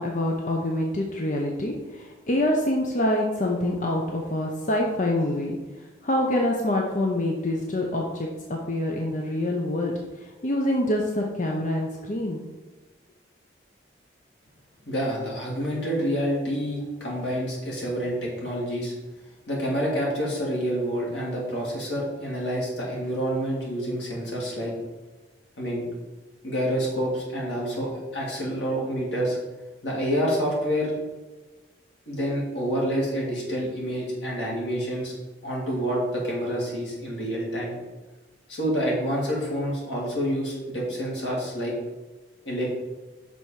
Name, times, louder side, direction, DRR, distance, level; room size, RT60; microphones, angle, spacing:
voice 1, 0.0-5.6 6.0-12.4, left 1 dB, 45° left, -1 dB, 0.7 m, -26 dB
voice 2, 14.9-18.9 19.5-24.7 25.6-25.8 26.4-29.4 29.8-30.9 32.1-35.1 35.4-37.7 38.5-41.7 42.4-42.7, equal, 80° left, -4 dB, 2.5 m, -28 dB
6.4 x 4.1 x 5.8 m, 1.2 s
head